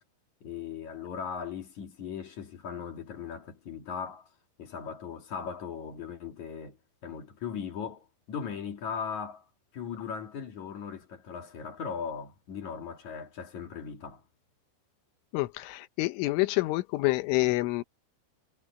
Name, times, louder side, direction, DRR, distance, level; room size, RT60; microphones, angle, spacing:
voice 1, 0.4-4.3 4.6-6.8 7.0-9.4 9.7-14.2, left 6 dB, 45° left, 2.9 m, -38 dB
voice 2, 15.3-17.8, left 22 dB, 85° left, 3.4 m, -27 dB
omnidirectional pair, 5.6 m